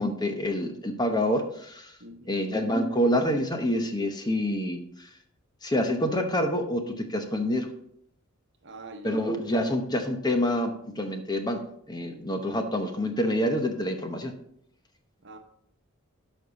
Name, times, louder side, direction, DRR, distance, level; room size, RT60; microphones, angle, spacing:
voice 1, 0.0-2.0 2.3-5.1 5.6-7.7 9.0-11.6 11.9-14.3, equal, 20° left, 0.9 m, -27 dB
voice 2, 2.0-2.4 8.6-9.2 9.6-9.7 15.2-15.4, right 1 dB, 55° right, 1.1 m, -44 dB
11.5 x 5.4 x 4.1 m
head